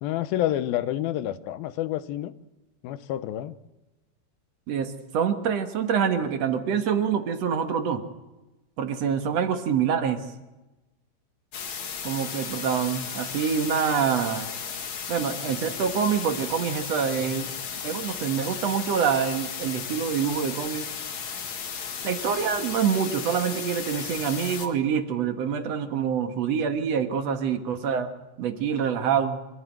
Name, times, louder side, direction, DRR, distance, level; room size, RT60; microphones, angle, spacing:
voice 1, 0.0-2.3 2.8-3.6, left 13 dB, 85° left, 13 dB, 2.7 m, -28 dB
voice 2, 4.7-8.0 8.8-10.2 12.0-14.5 15.1-17.5 17.8-20.9 22.0-28.1 28.4-29.4, right 7 dB, 55° right, 7 dB, 2.2 m, -26 dB
sound 1, 11.5-24.7, left 6 dB, 55° left, 2.9 m, -35 dB
25.5 x 15.0 x 9.2 m, 1.1 s
omnidirectional pair, 4.1 m